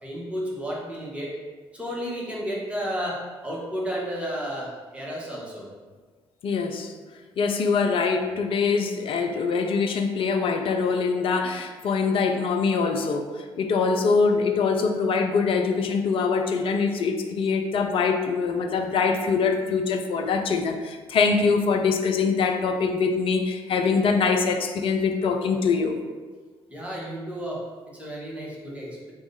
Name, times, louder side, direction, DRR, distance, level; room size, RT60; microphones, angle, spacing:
voice 1, 0.0-1.4 1.7-5.7 26.7-29.1, equal, 10° right, -5 dB, 1.3 m, -32 dB
voice 2, 6.4-6.9 7.4-26.0, left 5 dB, 45° left, 5 dB, 0.4 m, -23 dB
3.4 x 2.5 x 3.9 m, 1.4 s
figure-of-eight pair, 45°, 13 cm